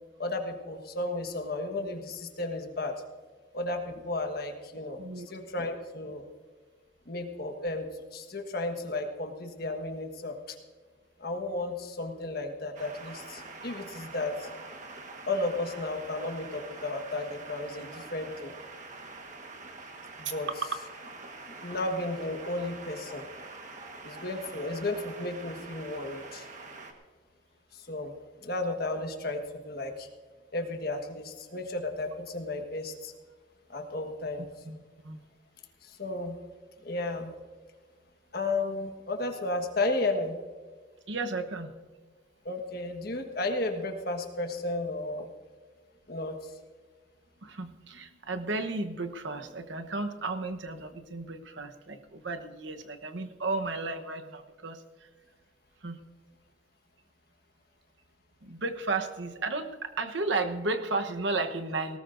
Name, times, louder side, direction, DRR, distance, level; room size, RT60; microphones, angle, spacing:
voice 1, 0.2-2.9 3.5-5.0 5.3-6.2 7.1-10.6 11.2-14.5 15.3-18.5 20.2-20.5 21.6-23.2 24.0-26.5 27.7-30.1 30.5-33.1 33.7-34.5 35.8-36.4 36.8-37.3 38.3-40.3 42.4-45.3 46.1-46.5, left 2 dB, 50° left, 4 dB, 1.5 m, -33 dB
sound 1, 12.7-26.9, right 3 dB, 40° right, 1.4 m, -45 dB
voice 2, 20.2-20.8 34.6-34.8 35.0-35.2 41.1-41.7 47.4-55.1 55.8-56.0 58.4-62.0, right 3 dB, 70° right, 6 dB, 1.0 m, -33 dB
19.5 x 18.0 x 2.6 m, 1.5 s
head